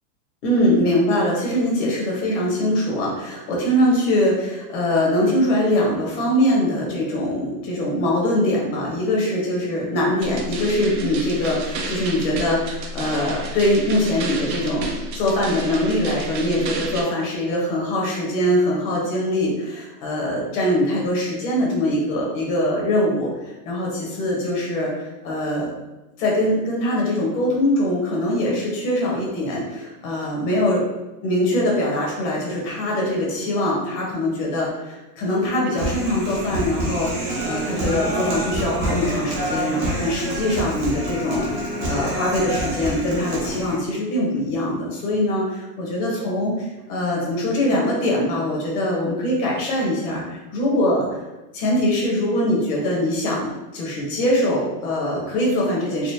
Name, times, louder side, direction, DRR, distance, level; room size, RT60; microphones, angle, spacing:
voice 1, 0.4-23.3 23.6-25.7 26.2-30.8 31.2-51.2 51.5-56.1, left 1 dB, 45° left, -3 dB, 1.3 m, -22 dB
sound 1, 10.2-17.0, right 2 dB, 80° right, 0.9 m, -31 dB
Human voice, 35.7-43.8, right 1 dB, 20° right, 0.4 m, -27 dB
4.1 x 2.1 x 2.9 m, 1.0 s
supercardioid pair, 145°, 50 cm